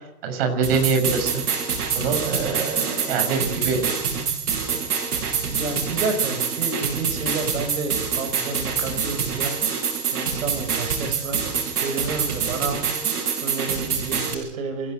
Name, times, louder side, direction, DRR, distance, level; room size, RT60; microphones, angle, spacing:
voice 1, 0.2-1.4 1.9-3.8, right 5 dB, 40° right, 4 dB, 6.6 m, -24 dB
sound 1, 0.6-14.3, right 6 dB, 90° right, 7.7 m, -26 dB
voice 2, 5.5-9.6 10.1-12.8 13.4-14.9, right 3 dB, 65° right, 6 dB, 5.6 m, -30 dB
28.5 x 15.5 x 8.1 m, 0.88 s
hypercardioid pair, 170°, 45 cm